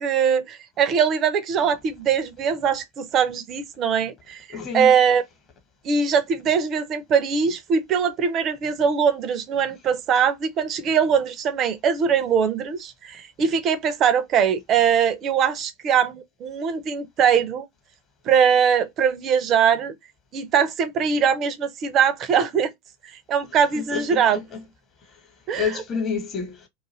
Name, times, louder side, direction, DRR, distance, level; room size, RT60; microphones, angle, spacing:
voice 1, 0.0-4.4 4.7-5.2 5.8-17.7 18.3-19.9 20.3-22.7 23.3-24.4 25.5-25.7, right 7 dB, 35° right, 0.6 m, -21 dB
voice 2, 4.5-4.9 23.7-24.6 25.1-25.2 25.6-26.7, left 6 dB, 30° left, 1.1 m, -29 dB
2.5 x 2.4 x 2.9 m
figure-of-eight pair, 85°, 0 cm